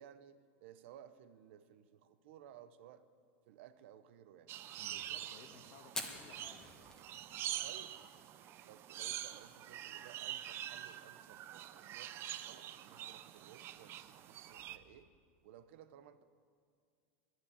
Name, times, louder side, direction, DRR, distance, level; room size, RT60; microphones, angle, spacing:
voice 1, 0.0-3.0 3.5-4.5 7.6-8.3 8.6-12.2 12.4-15.1 15.4-16.2, right 10 dB, 70° right, 12 dB, 0.8 m, -58 dB
sound 1, 4.5-14.8, right 12 dB, 35° right, 0.5 m, -45 dB
voice 2, 4.8-6.7 7.5-7.8, left 7 dB, 55° left, 6 dB, 1.5 m, -59 dB
Fire, 5.8-15.0, left 2 dB, 10° left, 1.4 m, -53 dB
10.5 x 10.0 x 9.8 m, 2.2 s
supercardioid pair, 135°, 7 cm